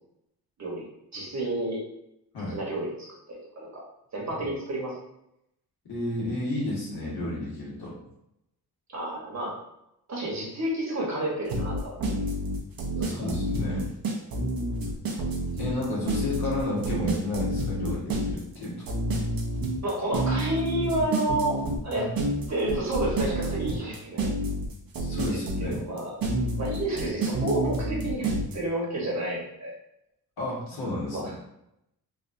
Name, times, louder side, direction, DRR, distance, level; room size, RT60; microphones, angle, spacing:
voice 1, 0.6-1.8 2.5-3.8 4.1-5.0 8.9-9.5 10.1-12.2 12.9-13.3 19.8-22.1 22.5-24.3 25.3-26.1 26.6-28.3 28.5-29.7 31.1-31.3, right 1 dB, 45° right, -3 dB, 1.2 m, -30 dB
voice 2, 5.9-8.0 13.0-14.0 15.6-18.8 21.9-22.1 25.0-25.8 30.4-31.3, left 1 dB, 75° left, -5 dB, 1.4 m, -32 dB
sound 1, 11.5-28.5, right 1 dB, 60° right, 0.8 m, -29 dB
3.2 x 2.4 x 2.6 m, 0.83 s
cardioid pair, 85°, 39 cm